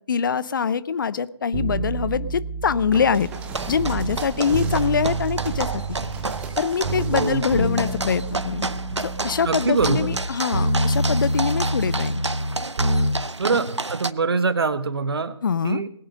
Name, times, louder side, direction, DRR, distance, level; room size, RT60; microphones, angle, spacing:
voice 1, 0.1-3.3 3.7-5.8 6.6-8.7 9.0-12.2 15.4-15.8, left 6 dB, 45° left, 18 dB, 0.7 m, -24 dB
sound 1, 1.5-4.2 4.5-6.6 6.8-10.3 10.5-13.1 13.4-13.5, right 1 dB, 45° right, 3.2 m, -26 dB
sound 2, 2.9-9.9 10.4-11.0 11.9-12.2, right 5 dB, 10° right, 0.8 m, -39 dB
sound 3, 3.3-14.1, right 3 dB, 85° right, 0.7 m, -31 dB
voice 2, 7.1-7.4 9.4-10.2 13.4-15.4 15.6-15.9, right 4 dB, 60° right, 12 dB, 1.2 m, -24 dB
20.0 x 8.8 x 5.3 m, 0.69 s
figure-of-eight pair, 145°, 14 cm